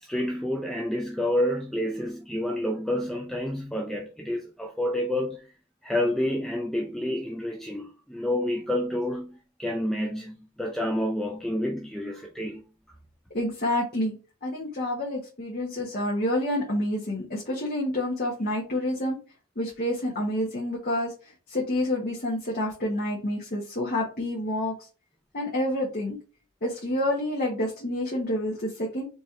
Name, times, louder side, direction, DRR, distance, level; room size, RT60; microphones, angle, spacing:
voice 1, 0.0-5.5 5.8-12.6, left 1 dB, ahead, 0.4 m, -29 dB
voice 2, 13.3-14.2 14.4-19.2 19.6-24.9 25.3-26.2 26.6-29.0, left 1 dB, 40° left, 1.1 m, -28 dB
4.2 x 3.1 x 3.6 m
head